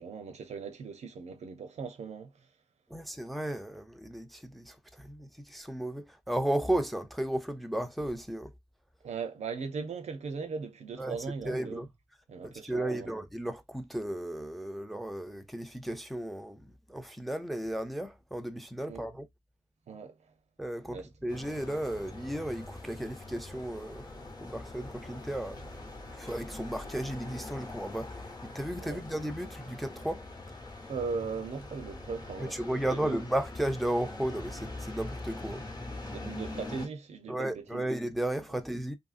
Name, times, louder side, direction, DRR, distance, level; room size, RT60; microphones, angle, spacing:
voice 1, 0.0-2.5 9.0-11.9 12.3-13.1 18.8-19.1 19.9-20.3 20.9-21.1 28.8-29.0 30.9-33.2 36.1-37.9, right 5 dB, 85° right, 0.6 m, -39 dB
voice 2, 2.9-8.5 11.0-11.2 11.4-11.9 12.4-19.3 20.6-24.1 24.4-25.8 26.1-30.2 32.4-35.6 37.3-39.0, right 1 dB, ahead, 0.4 m, -34 dB
sound 1, 21.3-36.9, left 2 dB, 35° left, 0.8 m, -43 dB
2.8 x 2.6 x 2.4 m
wide cardioid pair, 135°, 11 cm